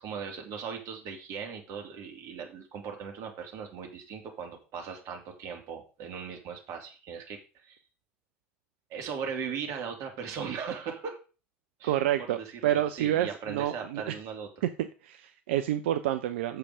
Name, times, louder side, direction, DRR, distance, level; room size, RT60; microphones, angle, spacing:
voice 1, 0.0-7.8 8.9-11.2 11.8-12.0 12.4-14.5, right 6 dB, 55° right, 3 dB, 2.9 m, -38 dB
voice 2, 11.8-14.1 14.8-16.6, right 12 dB, 70° right, 10 dB, 0.6 m, -29 dB
8.0 x 6.9 x 4.9 m, 0.34 s
hypercardioid pair, 70°, 7 cm